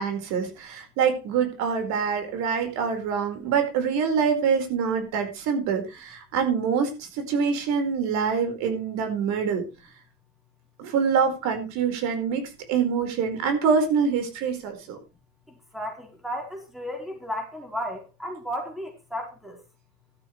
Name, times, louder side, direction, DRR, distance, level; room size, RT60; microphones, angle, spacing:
voice 1, 0.0-9.6 10.8-12.4 12.7-15.0, right 6 dB, 65° right, 7 dB, 4.6 m, -25 dB
voice 2, 15.5-19.6, equal, ahead, 2 dB, 4.1 m, -34 dB
13.5 x 13.0 x 3.2 m, 0.29 s
cardioid pair, 135°, 30 cm